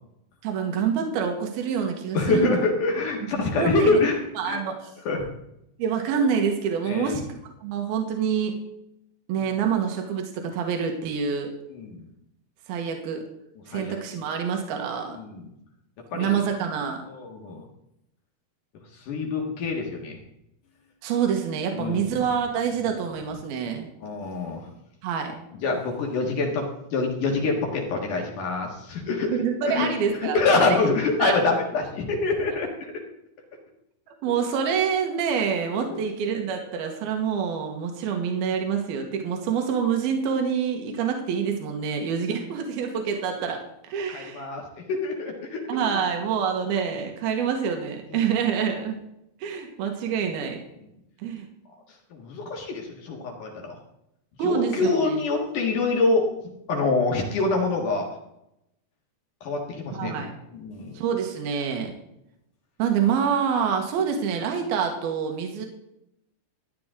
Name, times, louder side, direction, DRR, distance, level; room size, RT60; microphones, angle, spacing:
voice 1, 0.4-2.6 3.3-4.0 4.4-4.9 5.8-7.2 7.6-8.6 9.3-11.5 12.7-13.2 13.7-15.2 16.1-17.0 21.0-23.9 25.0-25.3 29.3-30.7 31.2-31.3 34.2-43.6 43.9-44.5 45.7-49.0 49.4-50.6 51.2-51.5 54.4-55.2 59.9-60.3 60.9-61.9 62.8-65.7, right 7 dB, 80° right, 3 dB, 3.2 m, -26 dB
voice 2, 2.1-4.2 4.4-4.6 5.0-5.2 6.8-7.1 9.4-9.5 11.7-12.0 13.7-14.0 15.1-15.5 16.1-16.4 17.1-17.6 19.1-20.2 21.7-22.0 22.8-22.9 24.0-24.6 25.6-29.4 29.6-29.9 30.2-32.9 35.8-36.0 44.1-45.8 48.1-48.3 52.1-53.8 54.4-56.3 56.7-58.1 59.4-60.2 60.5-61.0, left 3 dB, 60° left, 0 dB, 3.1 m, -26 dB
14.0 x 10.5 x 3.7 m, 0.82 s
omnidirectional pair, 4.4 m